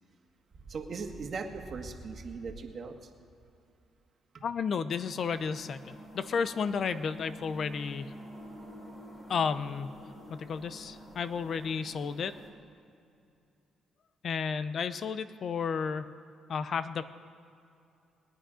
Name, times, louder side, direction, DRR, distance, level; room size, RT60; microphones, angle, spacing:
voice 1, 0.7-2.9, right 4 dB, 50° right, 3 dB, 1.7 m, -38 dB
voice 2, 4.4-8.1 9.3-9.9 10.3-12.3 14.2-16.1 16.5-17.0, left 6 dB, 55° left, 13 dB, 0.6 m, -32 dB
sound 1, 5.0-12.5, equal, 30° left, 3.3 m, -48 dB
21.5 x 9.2 x 5.1 m, 2.6 s
cardioid pair, 90°, 0 cm